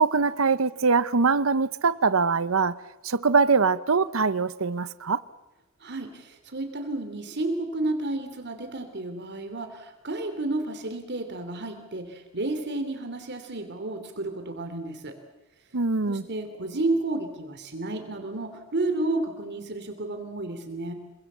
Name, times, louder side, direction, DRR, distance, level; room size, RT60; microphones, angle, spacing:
voice 1, 0.0-2.8 3.0-5.2 15.7-16.2, right 4 dB, 70° right, 0.8 m, -23 dB
voice 2, 5.8-15.2 16.1-20.9, right 2 dB, 55° right, 2.9 m, -31 dB
27.0 x 23.0 x 7.4 m
head